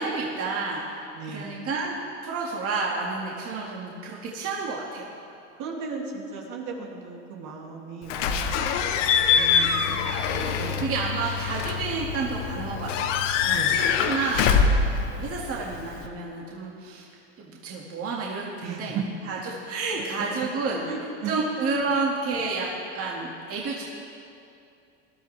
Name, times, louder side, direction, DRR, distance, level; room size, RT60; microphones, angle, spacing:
voice 1, 0.0-2.0 2.2-5.1 9.9-10.1 10.8-17.0 17.4-19.0 19.3-20.8 21.3-22.7 22.9-23.8, right 4 dB, 40° right, -3 dB, 2.1 m, -30 dB
voice 2, 1.1-1.6 5.6-8.4 8.8-10.9 11.6-11.8 13.5-13.9 18.6-19.0 20.9-21.3, right 5 dB, 55° right, -1 dB, 2.6 m, -36 dB
Slam / Squeak / Alarm, 8.1-16.1, left 6 dB, 80° left, 1.1 m, -24 dB
20.0 x 12.5 x 3.4 m, 2.5 s
supercardioid pair, 105°, 36 cm